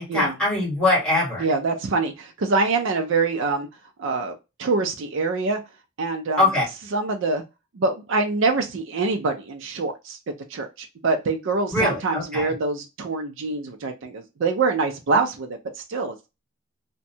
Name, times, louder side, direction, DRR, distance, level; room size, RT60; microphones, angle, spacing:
voice 1, 0.0-1.4 6.4-6.6 11.7-12.5, left 2 dB, 5° left, -5 dB, 1.5 m, -22 dB
voice 2, 1.4-3.7 4.0-5.6 6.0-6.4 6.9-7.4 7.7-10.2 10.5-16.3, right 3 dB, 70° right, 4 dB, 0.4 m, -25 dB
2.6 x 2.2 x 2.7 m, 0.25 s
head